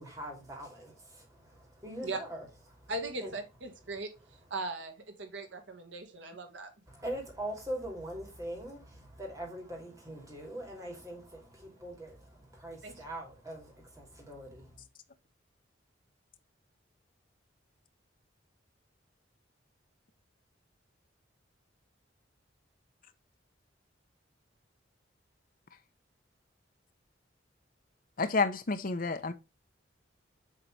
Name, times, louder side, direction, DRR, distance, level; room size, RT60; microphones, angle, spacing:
voice 1, 0.0-2.9 3.2-3.3 6.9-14.8, right 1 dB, 20° right, 2.6 m, -42 dB
voice 2, 2.9-6.7 12.8-13.1, right 2 dB, 75° right, 1.6 m, -39 dB
voice 3, 28.2-29.3, left 4 dB, 45° left, 0.7 m, -29 dB
7.5 x 4.0 x 3.2 m
head